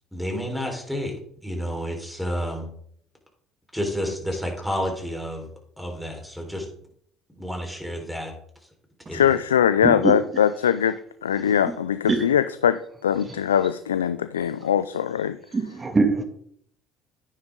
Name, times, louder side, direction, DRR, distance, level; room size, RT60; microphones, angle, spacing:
voice 1, 0.1-1.2 1.4-2.7 3.7-5.5 5.8-6.7 7.4-8.3 9.1-9.4, equal, ahead, 4.4 m, -30 dB
voice 2, 9.1-15.4, left 9 dB, 90° left, 0.4 m, -22 dB
voice 3, 15.5-16.2, right 3 dB, 25° right, 2.4 m, -22 dB
11.0 x 9.6 x 3.8 m
hypercardioid pair, 60°, 0 cm